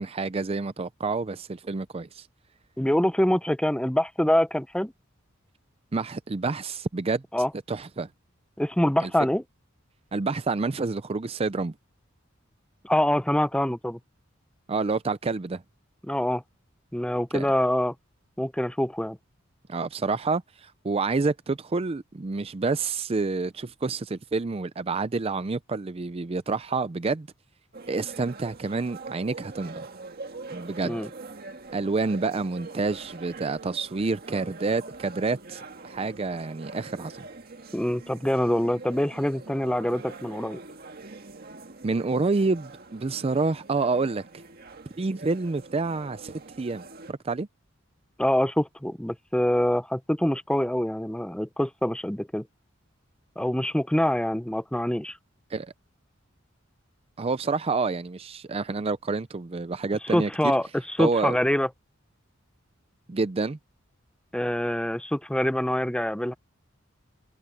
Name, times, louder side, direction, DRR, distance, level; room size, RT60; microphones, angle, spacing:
voice 1, 0.0-2.3 5.9-7.2 7.7-8.1 9.0-9.1 10.1-11.7 14.7-15.6 17.3-17.5 19.7-27.3 27.9-29.9 30.5-31.0 31.7-37.3 41.8-44.2 45.0-47.5 55.5-55.7 57.2-60.3 61.0-61.3 63.1-63.6, right 3 dB, 30° right, 0.5 m, -28 dB
voice 2, 2.8-4.9 7.3-7.5 8.6-9.4 12.8-14.0 16.0-16.4 16.9-17.9 18.4-19.2 30.8-31.1 37.7-40.6 48.2-52.5 53.4-55.2 60.1-61.7 64.3-66.3, left 1 dB, 5° left, 0.7 m, -25 dB
sound 1, 27.7-47.1, right 3 dB, 50° right, 2.0 m, -44 dB
head